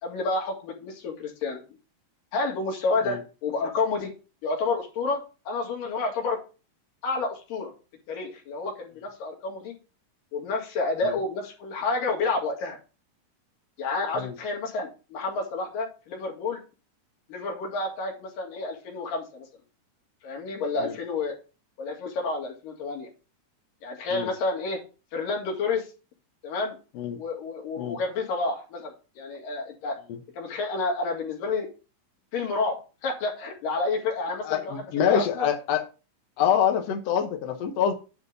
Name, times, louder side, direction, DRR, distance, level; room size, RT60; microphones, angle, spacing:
voice 1, 0.0-1.6 2.3-4.1 4.4-6.4 7.0-7.7 8.1-9.7 10.3-12.8 13.8-16.6 17.3-19.5 20.2-21.4 21.8-23.1 23.8-24.8 25.1-25.9 26.4-26.8 27.1-30.0 30.3-31.7 32.3-32.8 33.0-35.5, left 3 dB, 80° left, 3.7 m, -29 dB
voice 2, 34.4-35.8 36.4-37.9, left 8 dB, 60° left, 2.0 m, -25 dB
9.6 x 3.7 x 6.7 m
omnidirectional pair, 3.8 m